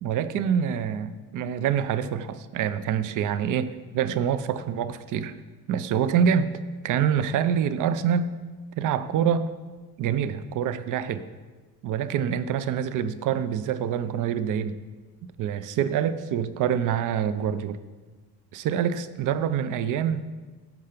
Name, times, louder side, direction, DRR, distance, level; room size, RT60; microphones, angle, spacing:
voice 1, 0.0-5.3 5.7-6.5 6.8-8.3 8.8-9.5 10.0-11.3 11.8-14.8 15.4-17.8 18.5-20.2, right 8 dB, 55° right, 0.6 m, -26 dB
15.5 x 5.7 x 5.1 m
cardioid pair, 140°, 37 cm